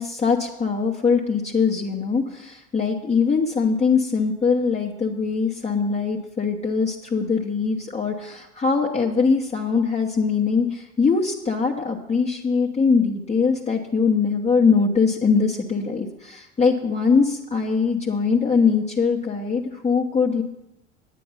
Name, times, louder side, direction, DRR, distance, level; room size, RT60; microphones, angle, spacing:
voice 1, 0.0-20.4, left 5 dB, 20° left, -1 dB, 1.1 m, -22 dB
9.7 x 9.3 x 5.6 m, 0.85 s
hypercardioid pair, 80°, 36 cm